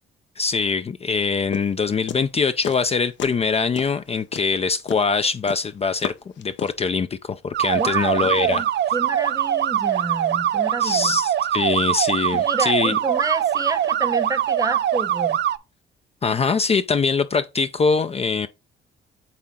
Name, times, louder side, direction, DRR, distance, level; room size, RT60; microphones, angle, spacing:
voice 1, 0.4-8.6 10.8-12.9 16.2-18.5, left 5 dB, 30° left, 0.5 m, -23 dB
sound 1, 1.5-2.9 3.2-3.5 3.8-6.9, left 9 dB, 65° left, 0.8 m, -32 dB
sound 2, 7.5-15.6, right 10 dB, 60° right, 0.6 m, -22 dB
voice 2, 7.7-11.2 12.3-15.4, right 3 dB, 15° right, 0.9 m, -30 dB
8.5 x 3.6 x 3.7 m
cardioid pair, 90°, 20 cm